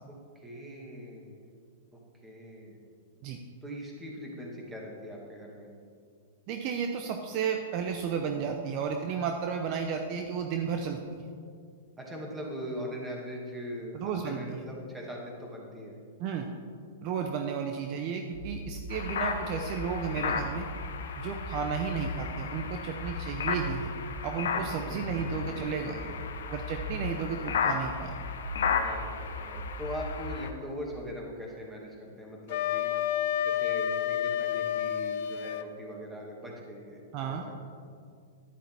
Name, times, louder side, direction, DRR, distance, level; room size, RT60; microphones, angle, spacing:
voice 1, 0.4-1.5 1.9-2.8 3.6-5.7 12.0-16.0 24.5-26.2 28.7-32.9 33.4-37.6, equal, 10° right, -2 dB, 2.2 m, -41 dB
voice 2, 6.5-11.3 13.9-14.6 16.2-16.5 17.0-20.7 21.2-23.9 24.2-26.0 26.5-28.1 37.1-37.4, right 6 dB, 45° right, 4 dB, 0.7 m, -33 dB
sound 1, 18.3-30.3, left 1 dB, 70° right, 1.6 m, -40 dB
sound 2, 18.9-30.5, left 6 dB, 80° left, 0.9 m, -35 dB
Wind instrument woodwind instrument, 32.5-35.7, left 10 dB, 60° left, 0.5 m, -29 dB
10.5 x 10.0 x 3.5 m, 2.2 s
hypercardioid pair, 130°, 0 cm